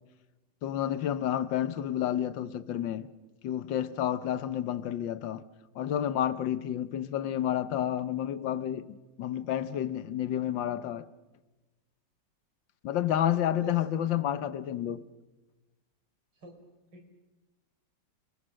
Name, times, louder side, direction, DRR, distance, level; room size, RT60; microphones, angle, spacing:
voice 1, 0.6-3.1 3.4-5.4 5.7-11.0 12.8-15.1, left 11 dB, 85° left, 1.7 m, -30 dB
voice 2, 13.3-13.8 16.4-16.6 16.9-17.1, right 2 dB, 75° right, 5.0 m, -45 dB
29.0 x 21.0 x 6.4 m
omnidirectional pair, 2.0 m